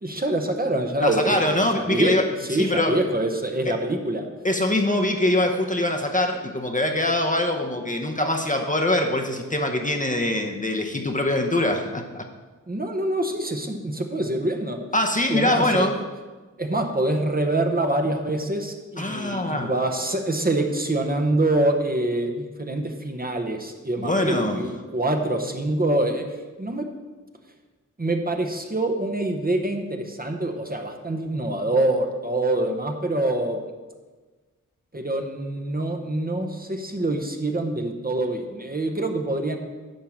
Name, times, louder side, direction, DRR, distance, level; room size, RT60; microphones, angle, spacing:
voice 1, 0.0-4.3 12.7-14.8 15.3-15.9 16.6-26.3 26.6-26.9 28.0-33.6 34.9-39.6, right 1 dB, 30° right, 3 dB, 0.9 m, -25 dB
voice 2, 1.0-2.2 2.5-3.0 3.6-3.7 4.4-12.3 14.9-16.0 19.0-19.7 24.0-24.6, left 1 dB, 25° left, 3 dB, 0.8 m, -23 dB
10.5 x 3.7 x 7.3 m, 1.3 s
wide cardioid pair, 70°, 32 cm